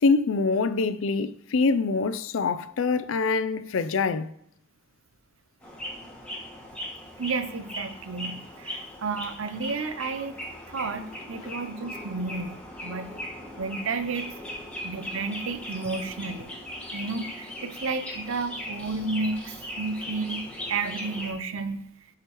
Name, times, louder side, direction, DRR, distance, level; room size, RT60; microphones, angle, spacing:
voice 1, 0.0-4.3 11.4-11.6, left 4 dB, 75° left, 0.4 m, -25 dB
sound 1, 5.6-21.3, left 1 dB, 5° left, 1.5 m, -39 dB
voice 2, 7.2-10.4 10.7-12.5 12.8-13.1 13.6-14.3 14.8-16.5 16.9-21.8, right 4 dB, 85° right, 0.6 m, -32 dB
11.5 x 4.9 x 3.0 m
head